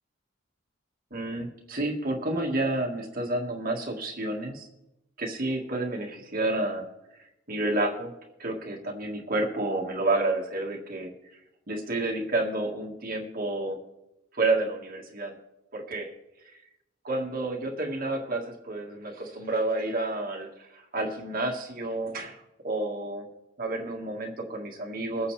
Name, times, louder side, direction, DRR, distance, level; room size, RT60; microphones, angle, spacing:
voice 1, 1.1-4.7 5.2-6.9 7.5-8.1 8.4-11.1 11.7-13.8 14.3-15.3 15.7-16.1 17.0-22.4 22.6-23.3 23.6-25.3, right 2 dB, 45° right, 0 dB, 1.7 m, -30 dB
22.5 x 8.9 x 3.3 m, 0.92 s
head